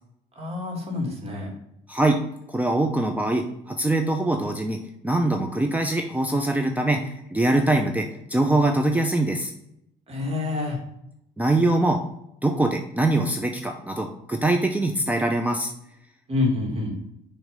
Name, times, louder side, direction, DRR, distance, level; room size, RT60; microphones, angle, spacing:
voice 1, 0.4-1.5 10.1-10.8 16.3-17.0, left 3 dB, 35° right, 0 dB, 2.1 m, -27 dB
voice 2, 1.9-2.2 2.5-9.5 11.4-12.0 12.4-15.7, right 2 dB, 10° right, 4 dB, 0.5 m, -23 dB
6.1 x 3.2 x 5.1 m, 0.78 s
cardioid pair, 110°, 17 cm